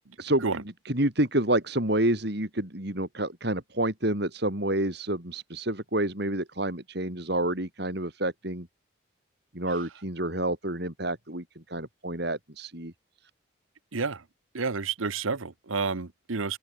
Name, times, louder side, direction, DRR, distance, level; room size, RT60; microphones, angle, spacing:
voice 1, 0.2-8.7 9.5-12.9, right 1 dB, 55° right, 3.7 m, -29 dB
voice 2, 13.9-14.2 14.5-16.6, right 4 dB, 85° right, 1.1 m, -30 dB
open air
head